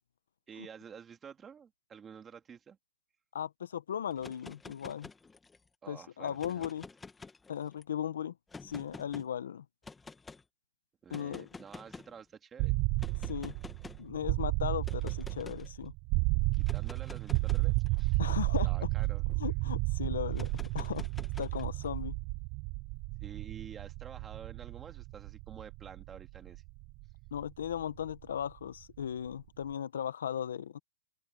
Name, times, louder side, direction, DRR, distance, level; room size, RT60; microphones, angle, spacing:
voice 1, 0.5-2.8 5.8-6.7 11.0-12.8 16.5-18.2 18.6-19.3 23.2-26.6, right 7 dB, 15° right, 2.5 m, -50 dB
voice 2, 3.3-5.1 5.9-6.9 7.5-8.3 8.6-9.6 11.1-11.4 13.2-13.5 14.0-15.9 18.2-18.9 19.4-20.5 20.7-21.1 21.4-22.2 27.3-30.8, left 9 dB, 75° left, 1.2 m, -37 dB
sound 1, 4.1-5.7 6.3-7.8 8.5-9.3 9.8-10.4 11.1-12.2 13.0-14.1 14.8-15.7 16.5-19.4 20.3-21.9, left 4 dB, 5° left, 1.5 m, -49 dB
sound 2, 12.6-28.4, right 26 dB, 30° right, 0.4 m, -33 dB
open air
hypercardioid pair, 160°, 0 cm